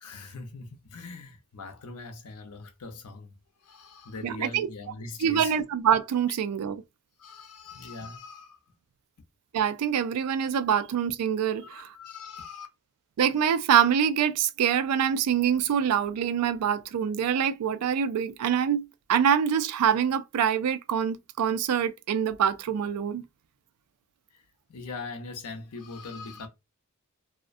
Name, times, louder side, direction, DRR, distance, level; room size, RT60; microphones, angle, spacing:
voice 1, 0.0-3.4 3.6-5.6 7.2-8.6 11.6-12.7 24.3-24.4 24.7-26.5, left 3 dB, 85° left, 0.6 m, -41 dB
voice 2, 4.2-4.7 5.2-6.8 9.5-11.9 13.2-23.2, right 8 dB, 85° right, 0.3 m, -25 dB
2.4 x 2.0 x 2.5 m
head